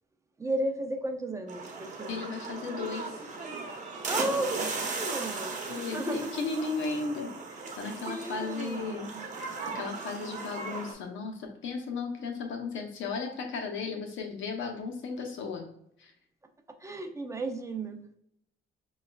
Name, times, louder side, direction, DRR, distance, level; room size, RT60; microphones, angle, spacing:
voice 1, 0.4-2.2 4.1-6.3 7.6-7.7 8.1-8.8 9.1-9.2 16.8-18.1, right 2 dB, 15° right, 5 dB, 0.5 m, -34 dB
sound 1, 1.5-10.9, right 4 dB, 40° right, 0.9 m, -37 dB
voice 2, 2.1-3.1 5.6-7.3 7.8-9.1 9.7-15.7 16.0-16.1, left 4 dB, 75° left, 3 dB, 0.7 m, -35 dB
5.9 x 2.3 x 2.2 m, 0.72 s
cardioid pair, 90°, 20 cm